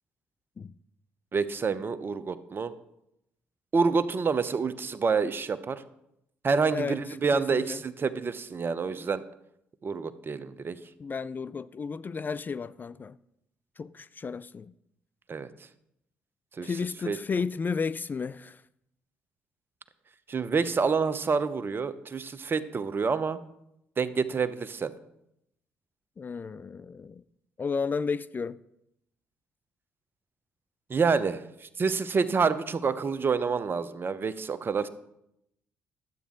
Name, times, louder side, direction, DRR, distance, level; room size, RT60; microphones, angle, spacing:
voice 1, 1.3-2.7 3.7-5.8 6.4-9.2 9.8-10.8 15.3-15.5 16.6-16.7 17.1-17.2 20.3-23.4 24.0-24.9 30.9-34.9, right 5 dB, 40° right, 0.8 m, -28 dB
voice 2, 7.3-7.8 11.0-13.2 13.8-14.7 16.6-18.6 26.2-27.2 27.6-28.6, left 5 dB, 35° left, 0.3 m, -33 dB
12.0 x 8.2 x 3.8 m
hypercardioid pair, 50°, 6 cm